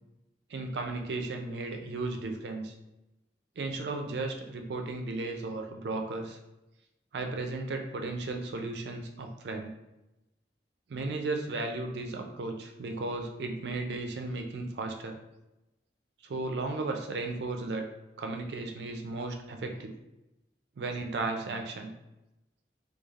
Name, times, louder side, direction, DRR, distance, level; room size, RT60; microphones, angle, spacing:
voice 1, 0.5-2.7 3.6-6.4 7.1-9.7 10.9-15.1 16.2-17.9 18.2-19.9 20.8-21.9, right 3 dB, 65° right, 4 dB, 0.4 m, -35 dB
3.2 x 2.3 x 2.4 m, 0.95 s
head